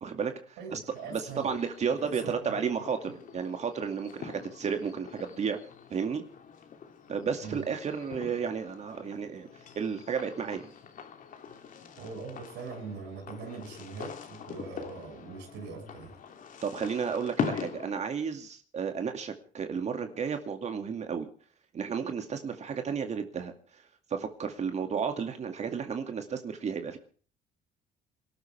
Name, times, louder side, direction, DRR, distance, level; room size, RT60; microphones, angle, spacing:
voice 1, 0.0-0.8 1.1-5.6 5.9-6.2 7.1-9.5 9.8-10.7 16.6-21.3 21.7-23.8 24.1-27.0, right 6 dB, 40° right, 2.3 m, -33 dB
voice 2, 0.6-1.6 2.0-2.6 3.0-3.1 7.4-7.6 12.0-16.2, right 4 dB, 90° right, 7.0 m, -42 dB
sound 1, 0.9-18.0, left 7 dB, 50° left, 2.9 m, -42 dB
27.0 x 13.0 x 3.5 m
cardioid pair, 110°, 17 cm